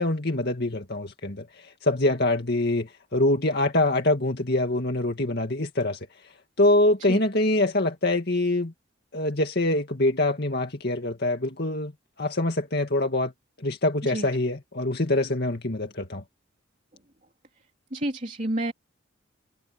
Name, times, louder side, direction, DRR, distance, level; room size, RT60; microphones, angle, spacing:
voice 1, 0.0-6.1 6.6-8.7 9.1-11.9 12.2-13.3 13.6-16.2, left 2 dB, 50° left, 2.2 m, -24 dB
voice 2, 17.9-18.7, right 1 dB, 35° right, 3.3 m, -29 dB
head